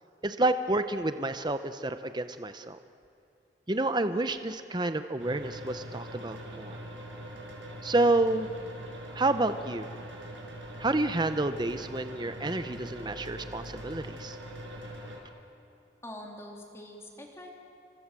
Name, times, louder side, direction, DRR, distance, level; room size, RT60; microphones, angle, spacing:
voice 1, 0.2-2.8 3.7-6.8 7.8-8.5 9.1-9.9 10.8-14.4, right 2 dB, 25° right, 10 dB, 0.8 m, -29 dB
sound 1, 5.2-15.2, right 1 dB, 75° right, 5.6 m, -42 dB
voice 2, 16.0-17.5, left 1 dB, 15° left, 0 dB, 3.6 m, -44 dB
30.0 x 26.0 x 7.6 m, 2.5 s
head